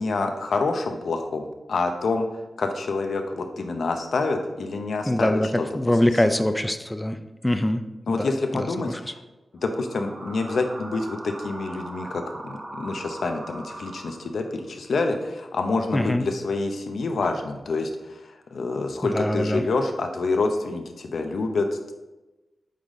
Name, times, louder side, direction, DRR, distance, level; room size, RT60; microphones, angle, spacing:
voice 1, 0.0-5.7 8.1-9.2 9.6-21.9, left 3 dB, 80° left, 5 dB, 0.8 m, -27 dB
voice 2, 5.0-7.2 7.4-7.8 8.1-8.3 8.5-8.7 15.9-16.2 19.1-19.6, left 1 dB, 10° left, 8 dB, 0.4 m, -23 dB
sound 1, 9.6-14.7, right 2 dB, 40° right, 0.8 m, -40 dB
8.3 x 4.1 x 3.7 m, 1.1 s
wide cardioid pair, 120°, 0 cm